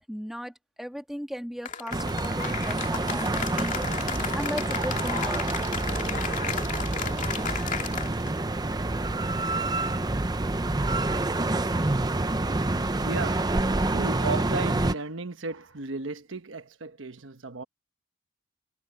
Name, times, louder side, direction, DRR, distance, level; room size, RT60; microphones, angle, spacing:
voice 1, 0.1-3.9 4.3-5.6, equal, ahead, 2.2 m, -37 dB
Cheering / Applause, 1.7-8.4, left 6 dB, 40° left, 2.3 m, -34 dB
sound 1, 1.9-14.9, right 2 dB, 20° right, 0.6 m, -27 dB
voice 2, 8.1-8.4 13.0-13.6 13.9-17.6, right 3 dB, 75° right, 1.1 m, -35 dB
head